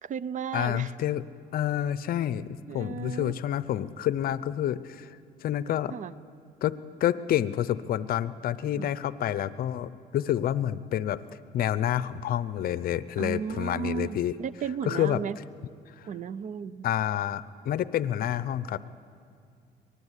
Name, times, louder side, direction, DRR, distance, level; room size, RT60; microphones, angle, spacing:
voice 1, 0.0-0.9 2.7-3.4 5.9-6.1 8.7-8.9 13.2-15.4 16.1-16.9, right 7 dB, 50° right, 18 dB, 0.6 m, -34 dB
voice 2, 0.5-1.2 1.5-5.2 5.4-5.9 6.6-11.2 11.5-14.3 14.9-15.2 16.0-16.1 16.8-18.8, left 11 dB, 60° left, 16 dB, 0.7 m, -28 dB
25.0 x 19.5 x 8.3 m, 2.2 s
cardioid pair, 110°, 17 cm